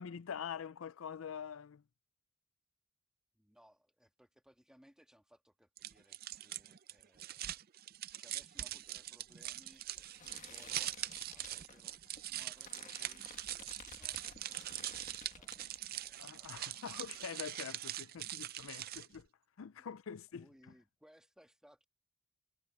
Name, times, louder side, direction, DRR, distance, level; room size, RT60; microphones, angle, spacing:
voice 1, 0.0-1.8 16.2-19.3 19.6-20.5, left 7 dB, 70° left, 0.4 m, -45 dB
voice 2, 3.3-9.8 10.4-10.9 11.3-12.0 12.3-16.7 20.3-21.9, equal, 5° right, 1.8 m, -66 dB
sound 1, 5.8-19.2, right 13 dB, 45° right, 0.5 m, -43 dB
sound 2, 8.6-16.3 16.6-17.2, left 5 dB, 35° left, 1.5 m, -56 dB
head